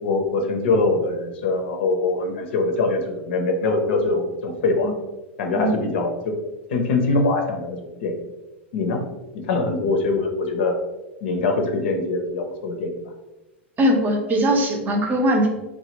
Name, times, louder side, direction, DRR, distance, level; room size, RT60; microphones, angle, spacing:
voice 1, 0.0-4.9 5.4-6.4 6.7-8.1 8.7-9.0 9.4-10.7 11.2-13.0, left 3 dB, 65° left, 3 dB, 0.6 m, -23 dB
voice 2, 13.8-15.5, equal, 25° right, 2 dB, 0.6 m, -20 dB
3.2 x 2.1 x 2.9 m, 1.0 s
hypercardioid pair, 95°, 7 cm